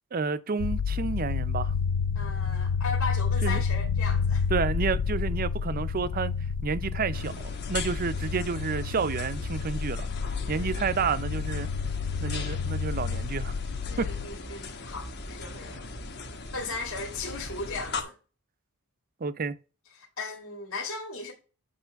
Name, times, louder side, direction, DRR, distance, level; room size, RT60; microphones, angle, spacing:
voice 1, 0.1-1.7 3.4-3.6 4.5-6.3 6.6-10.1 10.5-11.7 12.2-13.5 14.0-14.1 19.2-19.5, right 5 dB, 40° right, 0.5 m, -30 dB
sound 1, 0.6-14.3, left 6 dB, 85° left, 0.4 m, -30 dB
voice 2, 2.1-4.5 10.6-10.8 13.9-15.9 16.5-18.1 20.0-21.3, left 3 dB, 65° left, 2.1 m, -37 dB
sound 2, 7.1-18.0, left 3 dB, 50° left, 1.2 m, -39 dB
8.1 x 3.1 x 5.7 m
head